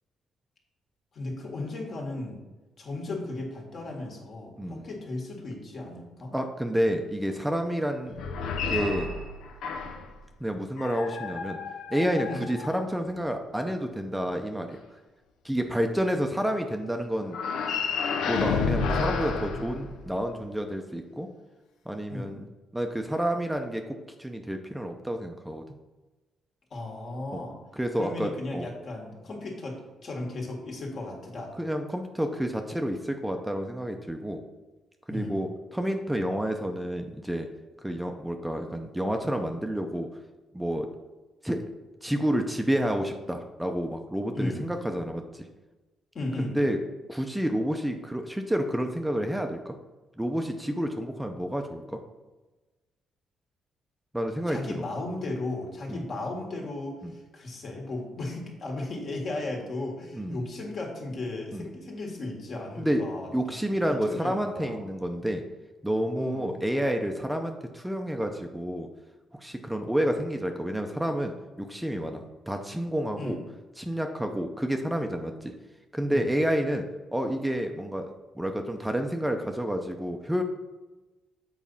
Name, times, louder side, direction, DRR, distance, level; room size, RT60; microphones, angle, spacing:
voice 1, 1.1-2.4 2.8-6.3 12.3-12.4 22.1-22.4 26.7-27.6 28.0-31.5 35.1-35.4 44.3-44.6 46.1-46.5 54.5-63.7 64.0-64.8 66.1-66.6 73.2-73.4 76.1-76.3, left 2 dB, 55° left, 0 dB, 2.0 m, -35 dB
voice 2, 6.3-8.2 8.7-9.1 10.4-11.6 11.9-14.8 15.4-17.4 18.3-21.3 21.9-22.5 22.7-25.6 27.3-27.4 27.7-28.7 31.6-34.4 35.1-37.5 37.8-40.1 40.5-40.9 41.4-41.6 42.0-45.5 46.4-46.8 47.1-49.7 50.2-52.0 54.1-54.6 55.9-56.1 57.0-57.1 60.1-60.5 61.5-61.7 62.8-63.0 63.3-65.4 65.8-68.9 69.3-73.4 73.8-75.5 75.9-76.8 77.1-80.4, equal, 5° right, 4 dB, 0.6 m, -29 dB
sound 1, 8.1-10.1 10.8-13.2 17.3-20.4, left 5 dB, 85° left, 0.7 m, -31 dB
7.3 x 4.1 x 5.6 m, 1.1 s
cardioid pair, 90°, 0 cm